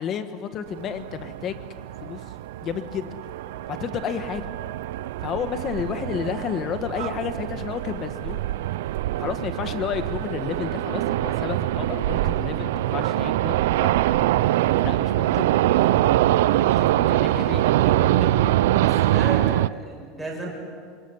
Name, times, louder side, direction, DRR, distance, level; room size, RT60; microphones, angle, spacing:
voice 1, 0.0-1.6 2.0-2.2 2.6-3.1 3.7-4.4 5.2-8.4 9.1-13.9 14.8-15.4 16.6-17.7, left 7 dB, 30° left, 10 dB, 1.5 m, -31 dB
sound 1, 0.7-19.7, right 14 dB, 90° right, 0.6 m, -23 dB
sound 2, 10.7-19.0, equal, 65° left, 7.6 m, -42 dB
voice 2, 16.6-17.4 17.7-18.4 18.8-20.5, right 2 dB, 5° right, -3 dB, 6.8 m, -35 dB
26.5 x 21.5 x 9.6 m, 2.1 s
supercardioid pair, 175°, 0 cm